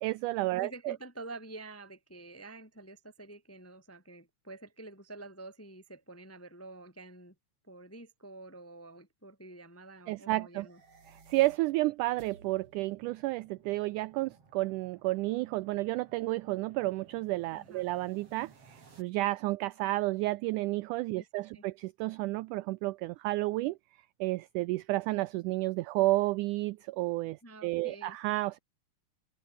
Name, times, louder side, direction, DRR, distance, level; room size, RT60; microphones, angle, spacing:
voice 1, 0.0-1.0 10.1-10.7 11.1-23.8 24.2-28.6, right 19 dB, 85° right, 1.8 m, -31 dB
voice 2, 0.6-7.3 7.7-10.8 17.5-17.9 21.2-21.3 21.5-21.6 27.4-28.2, right 2 dB, 10° left, 0.9 m, -48 dB
sound 1, 10.5-19.0, right 4 dB, 40° right, 5.0 m, -59 dB
omnidirectional pair, 4.1 m